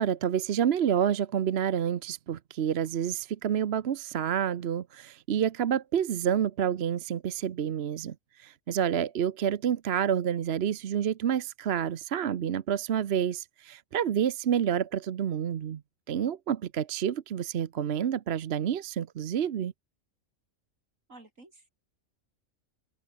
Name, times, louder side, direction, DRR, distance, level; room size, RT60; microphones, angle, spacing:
voice 1, 0.0-15.8 16.1-19.7, right 9 dB, 55° right, 1.0 m, -28 dB
voice 2, 21.1-21.7, right 2 dB, 75° right, 5.6 m, -51 dB
omnidirectional pair, 1.4 m